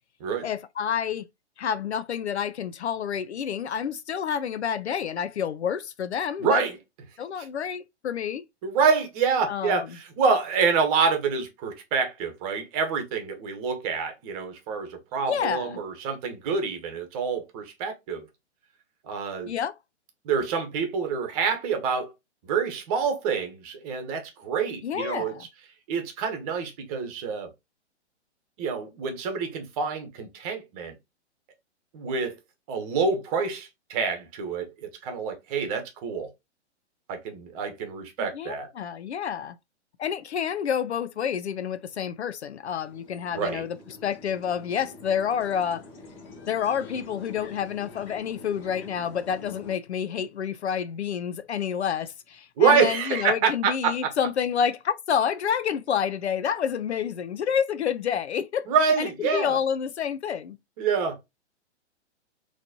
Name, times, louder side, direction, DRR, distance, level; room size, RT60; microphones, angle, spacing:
voice 1, 0.4-1.3 1.6-6.6 7.2-8.4 9.5-9.9 15.3-15.8 19.5-19.7 24.8-25.5 38.2-39.6 40.0-43.8 44.0-45.9 46.5-58.7 59.0-60.6, left 8 dB, 70° left, 0.5 m, -29 dB
voice 2, 6.4-6.8 8.6-18.3 19.0-19.5 20.2-22.1 22.4-25.3 25.9-27.5 28.6-30.9 31.9-32.4 32.7-36.3 37.1-38.7 43.3-43.6 52.6-54.1 58.7-59.6 60.8-61.2, right 5 dB, 30° right, 1.1 m, -27 dB
sound 1, 42.8-49.7, left 2 dB, 35° left, 1.7 m, -46 dB
4.0 x 3.0 x 2.7 m
figure-of-eight pair, 120°, 35 cm